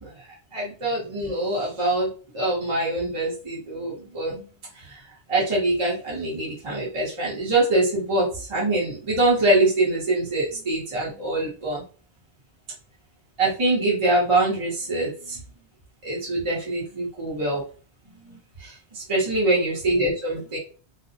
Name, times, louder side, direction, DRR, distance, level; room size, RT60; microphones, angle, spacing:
voice 1, 0.5-2.1 2.3-4.4 4.8-5.0 5.3-11.8 13.4-15.4 16.0-17.6 18.2-20.6, right 2 dB, 30° right, -6 dB, 0.8 m, -24 dB
2.4 x 2.0 x 2.6 m, 0.38 s
omnidirectional pair, 1.1 m